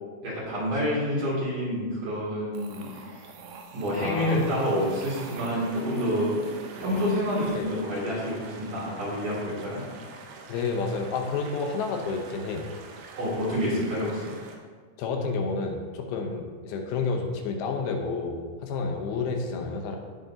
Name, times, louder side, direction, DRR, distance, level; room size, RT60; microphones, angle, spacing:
voice 1, 0.2-3.1 3.7-6.3 6.8-9.8 13.2-14.3, equal, 55° right, -8 dB, 4.1 m, -28 dB
sound 1, 2.5-7.8, right 5 dB, 70° right, 2.5 m, -43 dB
voice 2, 4.0-4.6 7.5-7.7 10.5-12.7 15.0-20.0, left 4 dB, 80° left, 3 dB, 2.9 m, -30 dB
sound 2, 4.2-14.6, right 4 dB, 90° right, 3.1 m, -46 dB
17.5 x 7.5 x 2.9 m, 1.5 s
omnidirectional pair, 4.5 m